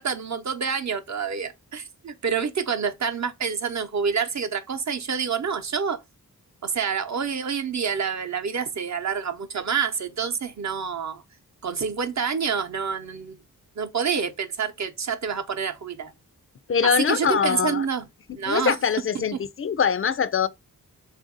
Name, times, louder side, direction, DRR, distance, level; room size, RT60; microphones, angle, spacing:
voice 1, 0.0-6.0 6.6-11.2 11.6-13.4 13.8-16.1 16.8-18.1 18.3-18.8 19.3-19.4, right 6 dB, 50° right, 0.8 m, -27 dB
voice 2, 16.7-17.9 18.4-20.5, left 7 dB, 40° left, 0.4 m, -23 dB
3.6 x 2.5 x 3.7 m
cardioid pair, 70°, 36 cm